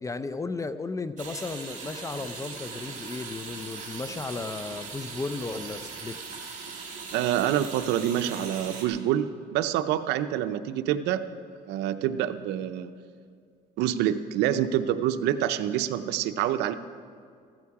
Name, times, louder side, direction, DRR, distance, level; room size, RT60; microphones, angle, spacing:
voice 1, 0.0-6.4, left 3 dB, 20° left, 12 dB, 0.5 m, -35 dB
sound 1, 1.2-8.9, right 5 dB, 50° right, 3.1 m, -40 dB
voice 2, 7.1-11.2 11.7-12.9 13.8-16.7, right 11 dB, 90° right, 10 dB, 0.6 m, -27 dB
14.0 x 14.0 x 4.8 m, 2.2 s
cardioid pair, 110°, 17 cm